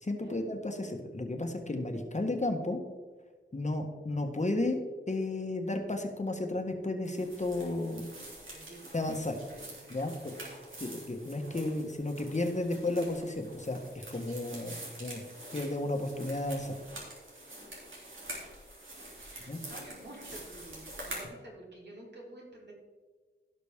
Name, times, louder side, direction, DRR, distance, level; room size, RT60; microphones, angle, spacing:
voice 1, 0.0-2.8 3.5-4.8 5.1-8.1 8.9-9.4 9.9-10.1 10.8-13.8 14.1-15.2 15.5-16.8 19.5-19.6, left 2 dB, 35° left, 4 dB, 1.4 m, -33 dB
sound 1, 7.0-21.3, right 1 dB, 85° right, 3.1 m, -46 dB
voice 2, 8.5-10.6 19.2-22.7, right 1 dB, 60° right, -4 dB, 3.7 m, -50 dB
16.5 x 6.0 x 3.6 m, 1.4 s
wide cardioid pair, 70°, 20 cm